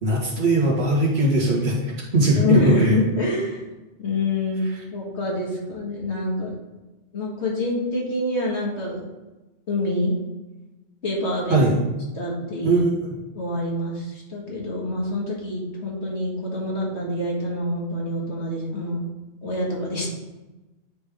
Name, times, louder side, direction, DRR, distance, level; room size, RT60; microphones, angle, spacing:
voice 1, 0.0-3.0 11.5-11.8 12.6-13.0, right 1 dB, 60° right, -4 dB, 1.7 m, -20 dB
voice 2, 2.4-3.6 4.0-4.6 4.9-6.5 7.1-9.0 9.7-10.1 11.0-11.6 12.2-12.8 13.4-19.0 19.4-20.1, left 2 dB, 70° left, -3 dB, 1.9 m, -26 dB
9.4 x 3.5 x 3.4 m, 1.1 s
omnidirectional pair, 1.2 m